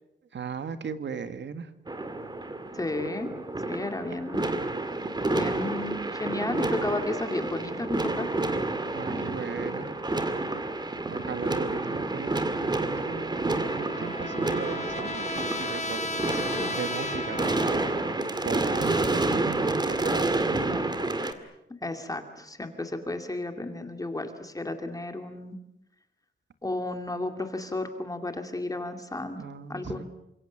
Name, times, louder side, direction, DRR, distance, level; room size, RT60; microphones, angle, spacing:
voice 1, 0.3-1.7 8.9-9.9 11.1-16.4 16.7-17.9 18.4-20.8 29.4-30.0, right 6 dB, 70° right, 10 dB, 1.9 m, -37 dB
sound 1, 1.9-21.3, right 2 dB, 20° right, 2.1 m, -29 dB
voice 2, 2.7-3.3 3.7-4.4 5.3-8.3 16.3-16.7 21.8-25.6 26.6-29.4 29.7-30.0, left 2 dB, 20° left, 6 dB, 2.4 m, -33 dB
Trumpet, 13.1-18.2, left 2 dB, 35° left, 2.0 m, -35 dB
28.5 x 26.5 x 7.4 m, 0.85 s
wide cardioid pair, 175°, 19 cm